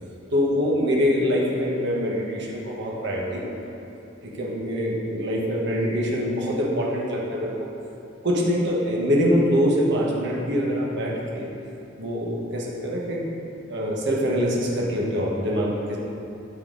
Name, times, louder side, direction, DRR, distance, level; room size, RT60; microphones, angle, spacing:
voice 1, 0.3-3.5 4.2-7.7 8.2-11.5 12.0-13.3 13.7-16.0, equal, 60° right, -3 dB, 1.5 m, -24 dB
13.0 x 4.3 x 4.0 m, 2.8 s
head